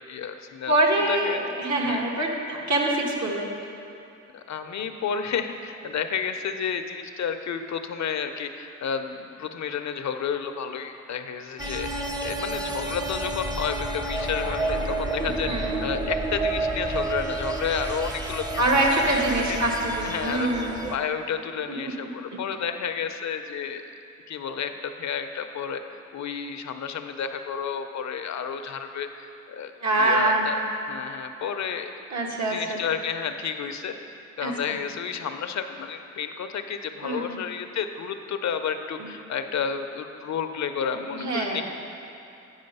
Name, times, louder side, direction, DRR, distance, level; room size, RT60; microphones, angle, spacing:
voice 1, 0.0-0.7 1.1-1.4 1.8-2.0 4.3-11.9 12.2-18.8 19.1-19.2 19.5-19.6 20.0-20.5 20.9-23.8 24.3-25.8 26.1-30.6 30.9-31.9 32.5-33.9 34.4-41.6, left 7 dB, 65° left, 8 dB, 0.6 m, -31 dB
voice 2, 0.7-3.5 15.4-15.8 18.6-20.8 21.8-22.1 29.8-30.5 32.1-32.8 34.4-34.5 37.0-37.3 39.0-39.1 40.9-41.6, right 1 dB, 65° right, -1 dB, 1.4 m, -25 dB
sound 1, 11.6-21.0, right 2 dB, 15° right, 0.6 m, -30 dB
8.8 x 5.0 x 5.4 m, 2.7 s
cardioid pair, 70°, 30 cm